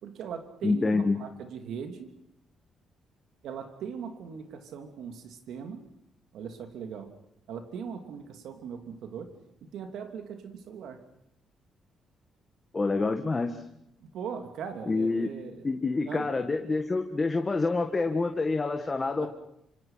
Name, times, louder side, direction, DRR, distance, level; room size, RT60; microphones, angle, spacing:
voice 1, 0.0-2.1 3.4-5.9 6.3-7.1 7.5-9.3 9.6-11.0 14.0-15.6 16.1-16.3 19.2-19.3, right 7 dB, 80° right, 6 dB, 3.0 m, -39 dB
voice 2, 0.6-1.2 12.7-13.6 14.9-15.3 15.6-19.3, left 3 dB, 25° left, 5 dB, 1.8 m, -27 dB
27.0 x 26.0 x 5.8 m, 0.77 s
cardioid pair, 90°, 0 cm